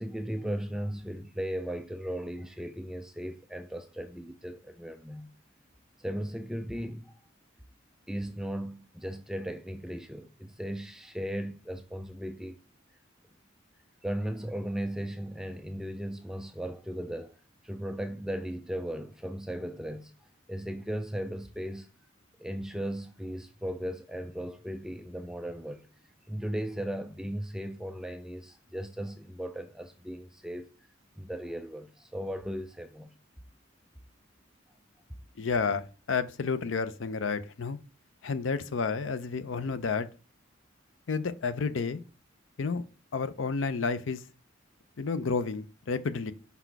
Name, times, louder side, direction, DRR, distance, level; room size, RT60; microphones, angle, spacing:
voice 1, 0.0-5.3 6.0-7.2 8.1-12.6 14.0-17.4 17.6-20.1 20.5-21.9 22.4-25.9 26.3-30.7 31.2-33.1, equal, 5° right, 0.3 m, -36 dB
voice 2, 35.4-37.8 38.2-40.1 41.1-42.0 42.6-42.8 43.1-44.2 45.0-46.3, left 5 dB, 70° left, 0.5 m, -30 dB
5.6 x 4.0 x 4.6 m
head